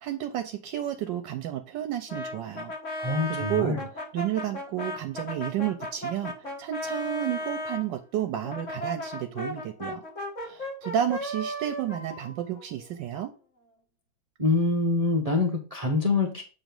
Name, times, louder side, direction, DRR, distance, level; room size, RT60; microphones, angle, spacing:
voice 1, 0.0-2.7 3.0-3.8 4.1-10.0 10.4-13.3, right 11 dB, 75° right, 7 dB, 1.2 m, -31 dB
Brass instrument, 2.1-7.8 8.4-13.2, left 1 dB, 45° left, 1.6 m, -36 dB
voice 2, 3.0-3.8 14.4-16.4, left 3 dB, 30° right, 1 dB, 0.7 m, -25 dB
7.7 x 3.0 x 5.2 m, 0.35 s
omnidirectional pair, 2.1 m